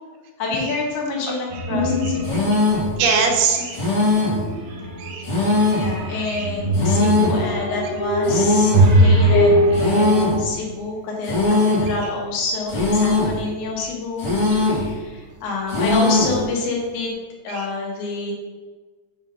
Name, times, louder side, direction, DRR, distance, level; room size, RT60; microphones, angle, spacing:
voice 1, 0.4-2.4 5.7-17.2 17.4-18.3, left 3 dB, 75° left, -1 dB, 2.7 m, -27 dB
sound 1, 1.5-2.5 2.9-3.4 4.2-10.2, right 1 dB, 65° right, 2.3 m, -20 dB
sound 2, 2.2-2.9 3.7-4.5 5.2-6.0 6.7-7.4 8.2-8.9 9.7-10.4 11.2-11.9 12.7-13.4 14.2-14.9 15.7-16.4, left 2 dB, 60° left, 1.4 m, -20 dB
voice 2, 3.0-4.2 5.0-5.3 6.3-6.5 13.8-13.9 14.4-14.6 17.5-17.7, right 5 dB, 85° right, 1 dB, 3.1 m, -23 dB
7.4 x 2.7 x 5.2 m, 1.4 s
omnidirectional pair, 5.0 m